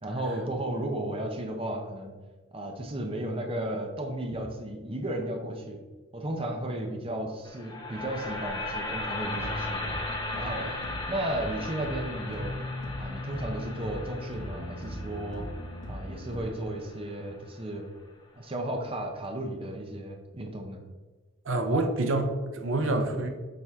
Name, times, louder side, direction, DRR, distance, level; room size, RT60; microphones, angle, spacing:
voice 1, 0.0-2.2 2.5-5.8 6.1-9.9 10.3-10.7 11.1-12.6 13.0-15.5 15.9-17.9 18.3-20.8, right 1 dB, 30° right, 3 dB, 0.8 m, -34 dB
sound 1, 7.5-17.6, left 2 dB, 25° left, 0.9 m, -37 dB
sound 2, 9.2-16.4, left 1 dB, 70° left, 2.0 m, -38 dB
voice 2, 21.4-23.3, right 2 dB, 80° right, 5 dB, 0.7 m, -27 dB
7.6 x 4.2 x 3.6 m, 1.3 s
head